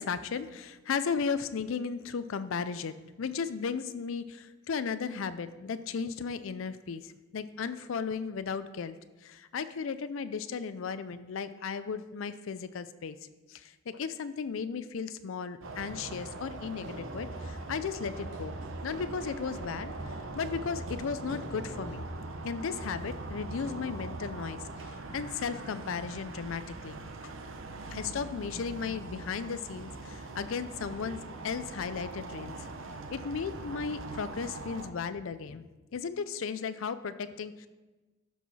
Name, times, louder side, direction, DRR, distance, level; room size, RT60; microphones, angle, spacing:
voice 1, 0.0-13.2 13.5-22.1 22.4-27.1 27.9-32.6 33.1-35.7 35.9-37.7, left 6 dB, 75° left, 13 dB, 0.4 m, -35 dB
sound 1, 15.6-34.9, right 3 dB, 70° right, 0.7 m, -42 dB
sound 2, 16.8-23.9, right 1 dB, 55° right, 1.1 m, -44 dB
12.5 x 4.7 x 4.1 m, 1.2 s
head